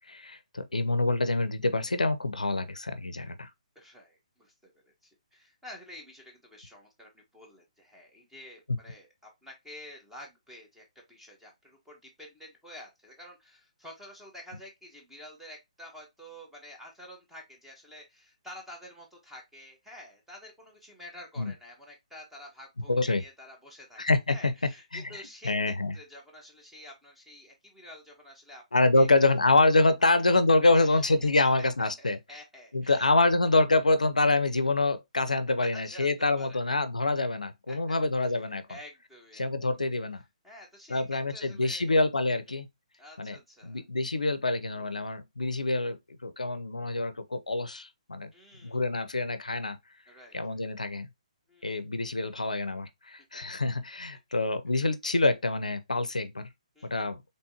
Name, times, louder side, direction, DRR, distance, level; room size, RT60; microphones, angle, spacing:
voice 1, 0.1-3.5 21.4-21.5 22.9-23.2 24.0-24.5 24.9-25.9 28.7-32.2 32.7-38.7 39.4-40.2 40.9-42.7 43.2-43.4 43.6-48.3 48.6-49.8 50.3-51.1 51.6-56.5 56.9-57.2, left 2 dB, 85° left, 0.6 m, -26 dB
voice 2, 3.7-24.0 24.3-25.5 25.9-28.6 28.9-29.1 30.0-30.1 30.7-33.3 35.6-36.6 37.7-37.8 38.2-38.3 38.7-39.5 40.4-41.9 43.0-43.8 48.3-48.8 50.1-50.6 51.5-51.9 56.7-57.0, left 1 dB, 5° right, 1.4 m, -49 dB
4.3 x 3.3 x 2.7 m
figure-of-eight pair, 140°, 4 cm